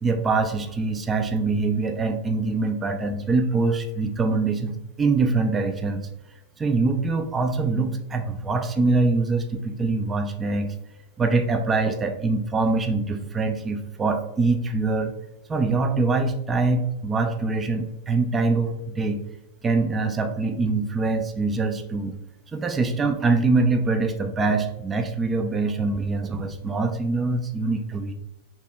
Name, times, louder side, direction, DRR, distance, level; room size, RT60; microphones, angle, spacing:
voice 1, 0.0-6.1 6.6-10.7 11.2-15.1 15.5-19.2 19.6-22.2 22.5-28.1, right 3 dB, 15° right, 6 dB, 0.4 m, -24 dB
5.3 x 2.9 x 2.3 m, 0.91 s
supercardioid pair, 135°, 0 cm